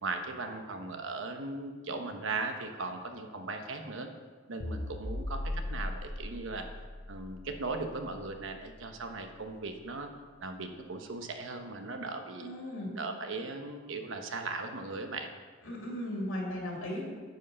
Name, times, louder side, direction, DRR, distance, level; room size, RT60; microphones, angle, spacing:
voice 1, 0.0-4.1 4.5-6.7 7.1-10.1 10.4-12.5 12.9-15.3, right 3 dB, 65° right, 5 dB, 1.0 m, -38 dB
sound 1, 4.6-9.1, left 1 dB, 45° left, 0.7 m, -39 dB
voice 2, 12.4-12.9 15.6-17.0, left 1 dB, 80° left, -1 dB, 2.7 m, -36 dB
9.2 x 7.9 x 5.5 m, 1.5 s
head